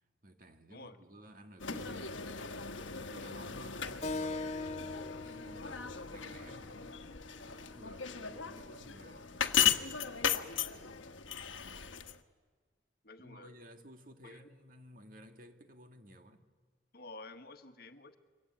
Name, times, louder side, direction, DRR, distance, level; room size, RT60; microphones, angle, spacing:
voice 1, 0.2-2.6 3.0-4.6 5.2-6.8 7.5-9.3 13.2-16.5, equal, 45° right, 2.0 m, -55 dB
sound 1, 1.6-12.2, left 8 dB, 80° left, 1.3 m, -36 dB
Keyboard (musical), 4.0-9.1, left 3 dB, 35° left, 1.5 m, -43 dB
voice 2, 13.0-13.6 14.2-14.4 16.9-18.2, left 2 dB, 50° left, 1.4 m, -51 dB
27.0 x 24.0 x 8.8 m
head